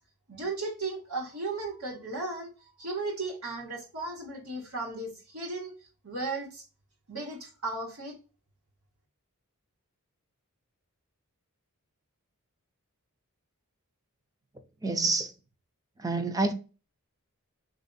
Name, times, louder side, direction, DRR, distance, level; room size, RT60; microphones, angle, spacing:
voice 1, 0.3-2.5 2.8-5.7 6.0-6.6 7.1-8.1, right 3 dB, 75° right, 1.5 m, -35 dB
voice 2, 14.8-15.3 16.0-16.5, right 3 dB, 15° right, 0.5 m, -27 dB
3.5 x 2.7 x 4.0 m
head